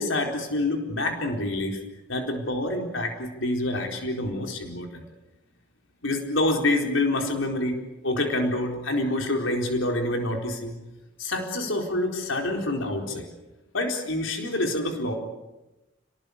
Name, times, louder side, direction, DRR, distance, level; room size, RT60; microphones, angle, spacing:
voice 1, 0.0-1.8 2.1-5.0 6.0-10.8 11.2-13.3 13.7-15.1, left 1 dB, 80° left, 2 dB, 4.3 m, -27 dB
30.0 x 19.5 x 8.6 m, 1.0 s
head